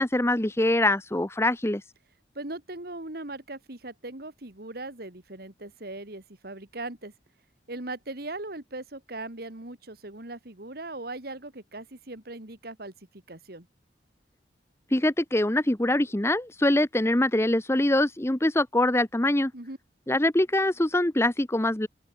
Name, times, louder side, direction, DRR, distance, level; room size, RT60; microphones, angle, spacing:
voice 1, 0.0-1.8 14.9-19.5 20.1-21.9, left 1 dB, 15° left, 1.0 m, -24 dB
voice 2, 2.3-7.1 7.7-12.9 13.3-13.7 19.5-19.8, right 2 dB, 60° right, 2.5 m, -39 dB
open air
head